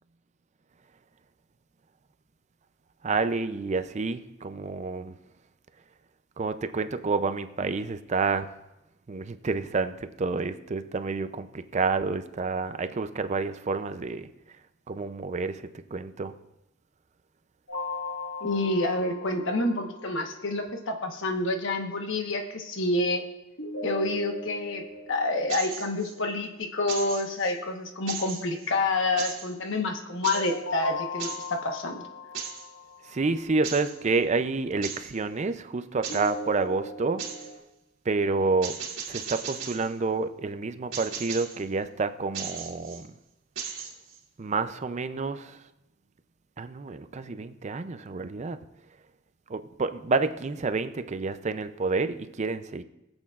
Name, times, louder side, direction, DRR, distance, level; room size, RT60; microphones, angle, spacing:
voice 1, 3.0-5.1 6.4-8.5 9.1-14.3 14.9-16.3 33.1-37.2 38.1-38.8 39.1-43.1 44.4-45.6 46.6-48.6 49.5-52.8, right 4 dB, 35° right, 11 dB, 0.4 m, -29 dB
sound 1, 17.7-20.6 23.6-26.6 30.3-33.5 36.1-37.6, left 2 dB, 80° left, 1.5 m, -39 dB
voice 2, 18.4-23.2 23.8-32.0, left 2 dB, 65° left, 4 dB, 1.2 m, -28 dB
sound 2, 25.5-26.1 26.9-27.5 28.1-28.7 29.2-29.5 30.2-30.6 31.2-31.5 32.3-32.7 33.6-34.0 34.8-35.1 36.0-36.3 37.2-37.5 38.6-39.9 40.9-41.6 42.3-43.0 43.6-44.2, right 7 dB, 85° right, 2.0 m, -37 dB
23.0 x 8.0 x 2.4 m, 0.91 s
head